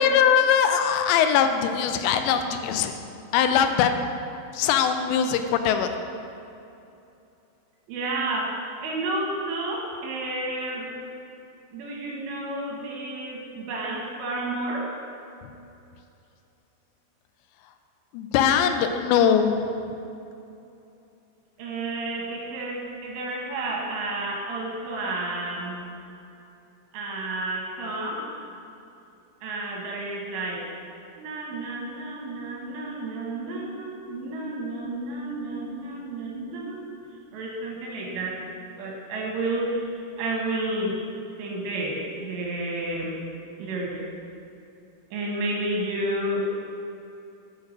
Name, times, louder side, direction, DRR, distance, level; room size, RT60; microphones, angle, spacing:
voice 1, 0.0-3.0 3.3-4.0 4.5-5.9 18.1-19.7, left 8 dB, 85° left, 7 dB, 2.8 m, -21 dB
voice 2, 7.9-11.0 11.7-14.9 21.6-25.8 26.9-28.3 29.4-30.8 31.2-36.9 37.3-38.4 38.8-41.0 41.4-43.2 43.6-44.0 45.1-46.5, right 2 dB, 80° right, -2 dB, 3.4 m, -31 dB
6.6 x 6.3 x 6.5 m, 2.7 s
omnidirectional pair, 5.1 m